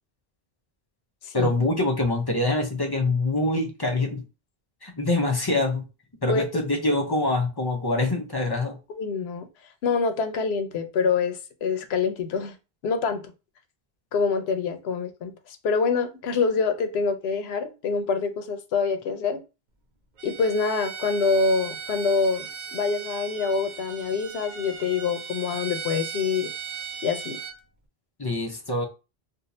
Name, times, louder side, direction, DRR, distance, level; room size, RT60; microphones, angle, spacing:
voice 1, 1.3-4.2 4.8-5.8 6.2-8.8 28.2-28.9, left 2 dB, 30° left, 0.5 m, -25 dB
voice 2, 8.9-9.5 9.8-12.5 12.8-13.2 14.1-15.3 15.6-19.4 20.2-26.5 27.0-27.4, left 5 dB, 85° left, 0.9 m, -25 dB
Bowed string instrument, 20.2-27.6, right 7 dB, 55° right, 0.6 m, -37 dB
2.6 x 2.3 x 4.0 m
omnidirectional pair, 1.0 m